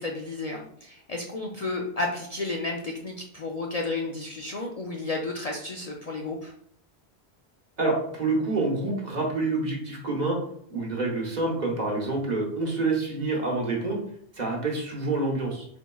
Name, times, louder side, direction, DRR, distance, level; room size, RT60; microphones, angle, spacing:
voice 1, 0.0-6.5, left 2 dB, 50° left, 0 dB, 0.5 m, -32 dB
voice 2, 7.8-10.4 10.7-14.0 14.3-15.7, right 3 dB, 45° right, -1 dB, 1.1 m, -27 dB
4.4 x 4.1 x 2.3 m, 0.67 s
omnidirectional pair, 1.1 m